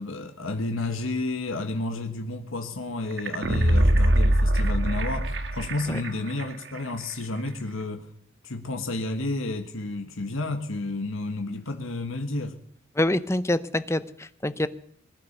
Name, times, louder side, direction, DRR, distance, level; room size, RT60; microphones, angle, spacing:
voice 1, 0.0-8.1 8.4-12.6, left 2 dB, 85° left, 5 dB, 1.5 m, -31 dB
sound 1, 3.2-6.1 6.4-6.5, right 1 dB, 55° right, 1.5 m, -22 dB
voice 2, 12.9-14.7, left 1 dB, 15° left, 14 dB, 0.6 m, -26 dB
21.0 x 10.5 x 6.7 m, 0.66 s
head